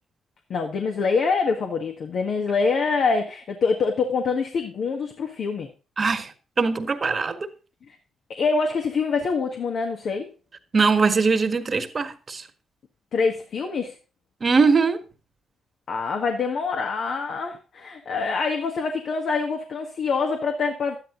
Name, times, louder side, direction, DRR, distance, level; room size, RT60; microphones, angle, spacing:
voice 1, 0.5-5.7 8.4-10.3 13.1-13.9 15.9-21.0, left 4 dB, 60° left, 1.7 m, -25 dB
voice 2, 6.0-6.3 6.6-7.5 10.7-12.4 14.4-15.0, right 4 dB, 40° right, 1.6 m, -21 dB
12.0 x 10.0 x 3.9 m
hypercardioid pair, 50°, 0 cm